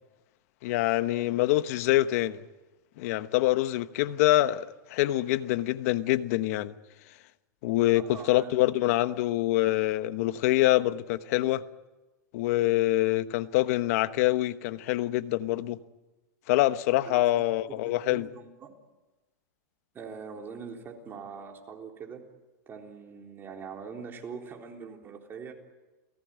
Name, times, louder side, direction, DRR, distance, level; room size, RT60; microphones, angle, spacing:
voice 1, 0.6-2.4 3.0-4.6 4.9-6.7 7.6-8.0 8.3-11.6 12.3-15.8 16.5-18.3, left 16 dB, 55° left, 1.1 m, -25 dB
voice 2, 7.9-8.8 17.0-18.7 19.9-22.2 22.7-25.5, right 5 dB, 20° right, 3.8 m, -43 dB
29.5 x 18.5 x 9.1 m
supercardioid pair, 140°, 10 cm